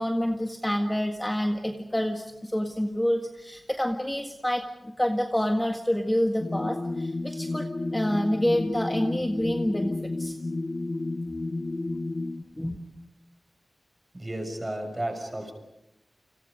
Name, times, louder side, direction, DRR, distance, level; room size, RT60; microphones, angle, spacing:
voice 1, 0.0-10.4 12.6-12.9, equal, 10° left, 3 dB, 1.7 m, -28 dB
sound 1, 6.4-12.4, left 2 dB, 35° left, 0.9 m, -31 dB
voice 2, 14.1-15.5, right 1 dB, 20° right, 5 dB, 6.1 m, -33 dB
30.0 x 28.0 x 5.2 m, 0.88 s
wide cardioid pair, 110°, 0 cm